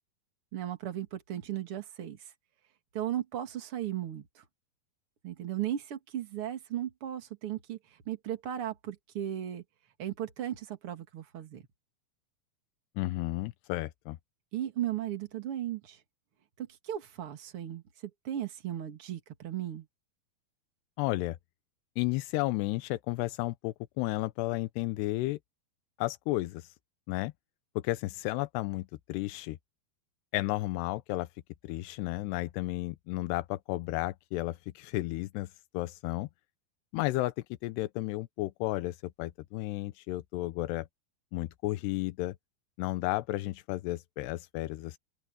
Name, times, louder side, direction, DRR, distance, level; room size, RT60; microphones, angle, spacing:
voice 1, 0.5-2.2 2.9-4.4 5.2-7.8 8.1-9.6 10.0-11.6 14.5-16.0 16.6-19.9, right 11 dB, 40° right, 2.4 m, -36 dB
voice 2, 13.0-14.2 21.0-21.4 22.0-25.4 26.0-26.7 27.1-27.3 27.8-29.6 30.3-31.3 31.6-36.3 36.9-37.3 37.6-40.9 41.3-42.4 42.8-45.0, left 19 dB, 90° left, 2.8 m, -33 dB
open air
omnidirectional pair, 4.7 m